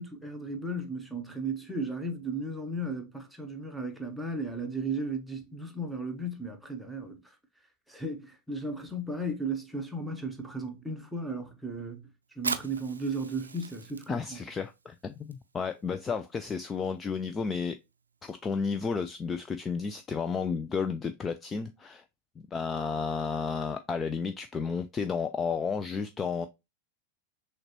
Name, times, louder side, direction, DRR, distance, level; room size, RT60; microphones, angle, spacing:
voice 1, 0.0-7.2 7.9-12.1 12.4-14.4, right 2 dB, ahead, 0.9 m, -35 dB
Fire, 12.3-19.5, right 4 dB, 75° right, 0.4 m, -42 dB
voice 2, 14.1-17.8 18.2-22.0 22.5-26.5, left 5 dB, 20° left, 0.3 m, -32 dB
6.3 x 2.2 x 3.0 m
figure-of-eight pair, 90°, 0 cm